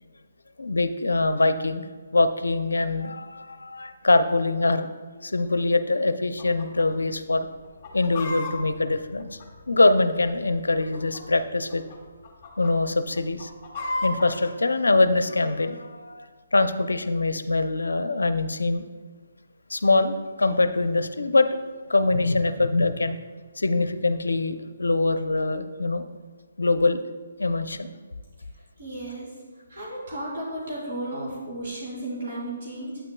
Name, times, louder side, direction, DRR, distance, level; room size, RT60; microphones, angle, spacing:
voice 1, 0.6-1.8 2.1-4.9 5.2-7.5 7.9-9.4 9.7-11.8 12.6-13.5 14.0-18.8 19.7-21.6 21.9-23.2 23.6-26.1 26.6-27.0 27.4-27.9, left 2 dB, 85° left, 11 dB, 0.5 m, -23 dB
Chicken rooster, 6.4-6.9 7.1-7.2 7.6-9.9 10.6-11.4 11.7-12.0 12.2-12.7 13.2-14.3, left 2 dB, 30° left, 1.3 m, -33 dB
voice 2, 28.8-29.3 29.7-33.0, right 1 dB, 55° right, -6 dB, 2.3 m, -34 dB
8.7 x 8.4 x 2.3 m, 1.5 s
figure-of-eight pair, 145°, 0 cm